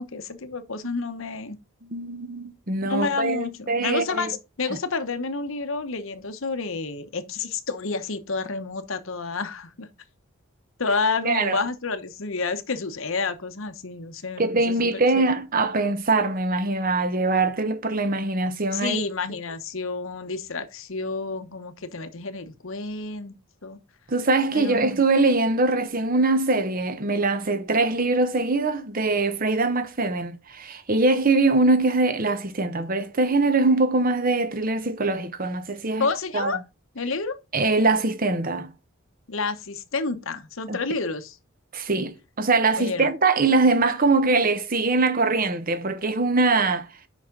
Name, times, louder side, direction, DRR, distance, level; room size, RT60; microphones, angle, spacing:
voice 1, 0.0-1.6 2.9-9.9 10.8-15.3 18.7-23.8 24.5-24.8 36.0-36.6 36.9-37.4 39.3-41.4 42.8-43.1, left 4 dB, 65° left, 1.0 m, -30 dB
voice 2, 1.9-4.4 11.2-11.6 14.4-19.0 24.1-36.1 36.3-36.5 37.5-38.7 40.7-40.8 41.7-46.9, right 3 dB, 40° right, 0.9 m, -22 dB
8.3 x 5.8 x 3.8 m
head